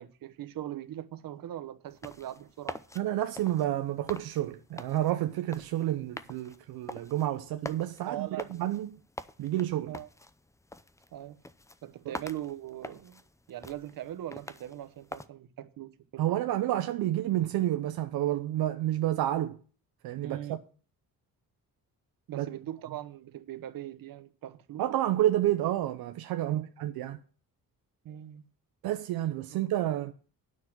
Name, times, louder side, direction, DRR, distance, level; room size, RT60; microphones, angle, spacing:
voice 1, 0.0-2.8 8.1-8.7 9.9-10.1 11.1-11.4 11.8-13.2 13.5-16.3 20.2-20.6 22.3-24.8 26.5-26.7 28.0-28.5 29.5-29.6, right 12 dB, 70° right, 1.0 m, -41 dB
sound 1, 1.9-15.3, left 2 dB, 10° left, 0.6 m, -46 dB
voice 2, 3.0-8.9 9.4-9.9 12.1-12.2 16.2-19.6 20.0-20.6 22.3-22.5 24.8-27.2 28.8-30.1, right 13 dB, 90° right, 0.7 m, -29 dB
9.4 x 6.2 x 7.6 m
cardioid pair, 85°, 35 cm